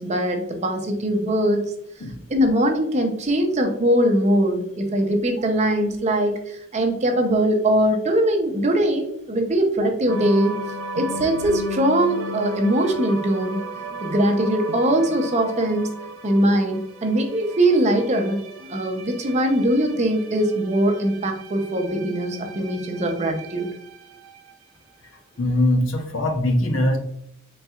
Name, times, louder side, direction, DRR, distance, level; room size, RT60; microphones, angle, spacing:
voice 1, 0.0-1.6 2.3-10.6 10.9-13.6 14.0-15.9 16.2-23.7, right 1 dB, 35° right, 4 dB, 0.6 m, -21 dB
sound 1, 10.1-24.6, right 1 dB, 85° right, 0.5 m, -36 dB
voice 2, 25.4-27.0, left 1 dB, 70° left, 5 dB, 0.7 m, -21 dB
4.2 x 3.9 x 2.3 m, 0.73 s
head